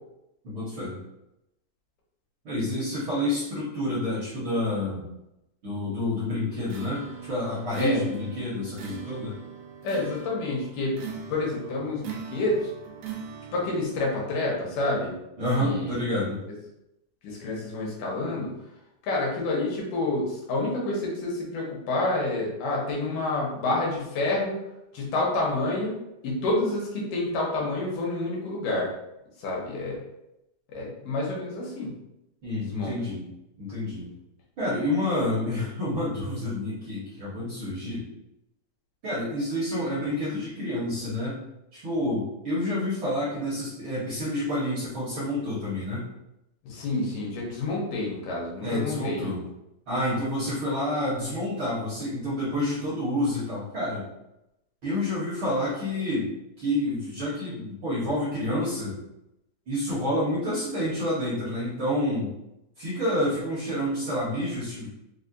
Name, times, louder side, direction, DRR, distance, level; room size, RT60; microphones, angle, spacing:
voice 1, 0.4-1.0 2.4-5.1 5.6-9.3 15.4-16.4 32.4-33.2 33.6-34.1 34.6-38.1 39.0-41.4 41.7-46.0 48.6-49.4 49.9-54.0 54.8-56.3 56.6-59.0 59.7-62.3 62.8-64.9, left 1 dB, 65° right, -8 dB, 1.2 m, -28 dB
sound 1, 6.6-13.8, right 7 dB, 85° right, 1.5 m, -40 dB
voice 2, 9.8-11.0 11.3-12.7 13.5-15.1 15.6-16.0 17.2-18.5 19.0-24.6 24.9-25.9 26.2-28.9 29.4-30.0 30.7-31.9 32.6-32.9 46.6-49.4, left 2 dB, 80° left, -3 dB, 2.5 m, -28 dB
5.5 x 2.1 x 2.5 m, 0.87 s
omnidirectional pair, 3.6 m